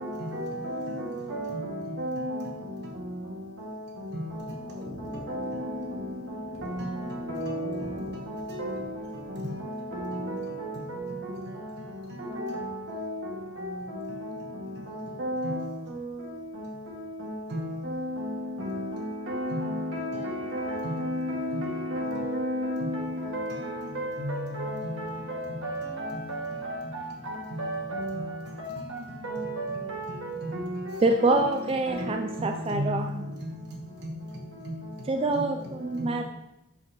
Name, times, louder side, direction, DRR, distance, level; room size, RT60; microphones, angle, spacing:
voice 1, 0.3-0.8 1.3-1.6 2.0-2.4 5.3-5.5 7.3-7.7 8.6-8.8 9.9-10.7 12.4-13.1 15.2-15.6 17.9-18.0 18.6-20.2 20.5-27.0 27.6-28.1 28.6-28.7 29.2-30.0 30.5-30.7 31.9-32.0, equal, 85° right, 2.0 m, -32 dB
voice 2, 1.5-3.0 4.1-6.4 6.8-8.7 9.4-10.2 10.8-11.6 12.1-12.6 14.1-15.8 17.5-18.0 19.5-20.4 20.8-21.2 21.5-21.9 22.2-22.3 22.8-23.1 23.5-23.9 24.2-25.8 26.1-27.1 27.5-27.8 28.1-29.4 29.7-30.7 31.1-31.6 32.4-33.7 34.0-34.3 34.7-34.9 35.3-36.2, equal, 55° right, 1.4 m, -39 dB
sound 1, 4.2-9.3, left 1 dB, 35° left, 1.4 m, -47 dB
voice 3, 31.0-33.2 35.1-36.2, right 2 dB, 30° right, 0.3 m, -26 dB
7.9 x 6.8 x 3.0 m
head